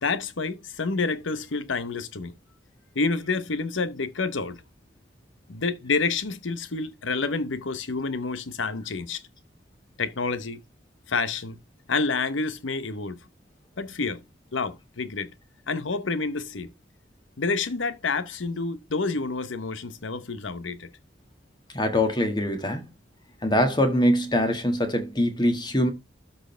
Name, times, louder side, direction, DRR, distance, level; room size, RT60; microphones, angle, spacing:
voice 1, 0.0-2.4 2.9-4.6 5.5-9.2 10.0-10.6 11.1-11.6 11.9-13.2 13.8-14.2 14.5-15.3 15.7-16.7 17.4-20.9, left 4 dB, 85° left, 0.9 m, -28 dB
voice 2, 21.7-22.8 23.4-25.9, left 1 dB, 25° left, 1.7 m, -23 dB
12.5 x 4.6 x 3.3 m
head